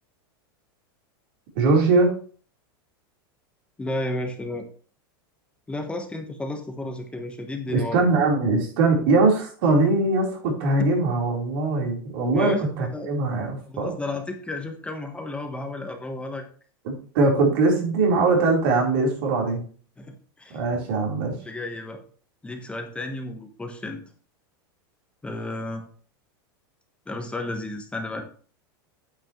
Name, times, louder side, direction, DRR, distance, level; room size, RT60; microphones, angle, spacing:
voice 1, 1.6-2.1 7.7-13.9 16.8-19.6 20.5-21.3, right 3 dB, 70° right, 0 dB, 3.9 m, -21 dB
voice 2, 3.8-4.7 5.7-8.0 12.3-13.1 13.7-16.5 20.0-20.6 21.4-22.0 22.4-24.0 25.2-25.8 27.1-28.2, left 2 dB, 10° left, 4 dB, 1.1 m, -32 dB
9.2 x 8.2 x 3.1 m, 0.42 s
supercardioid pair, 140°, 12 cm